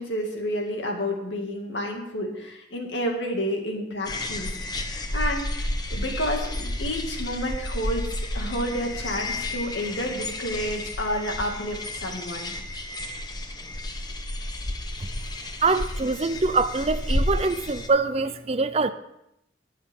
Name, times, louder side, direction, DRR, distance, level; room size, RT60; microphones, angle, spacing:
voice 1, 0.0-12.5, equal, 80° left, 1 dB, 2.4 m, -30 dB
sound 1, 4.1-17.9, left 1 dB, 20° left, 0.9 m, -31 dB
voice 2, 15.6-18.9, right 3 dB, 35° right, 12 dB, 0.5 m, -24 dB
20.5 x 7.3 x 3.8 m, 0.82 s
head